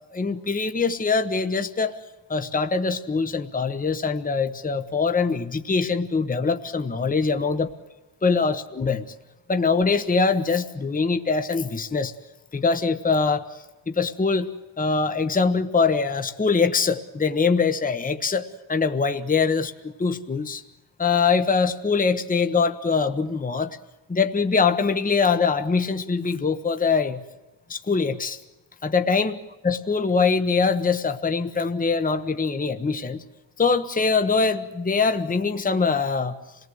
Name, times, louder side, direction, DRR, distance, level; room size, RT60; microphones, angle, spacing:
voice 1, 0.1-2.0 2.3-7.7 8.2-9.0 9.5-12.1 12.5-13.5 13.9-19.7 20.0-20.6 21.0-23.8 24.1-27.2 27.7-28.4 28.8-29.4 29.6-33.2 33.6-36.4, left 4 dB, 20° left, 8 dB, 1.0 m, -23 dB
27.0 x 18.5 x 7.8 m, 1.0 s
wide cardioid pair, 125°, 45 cm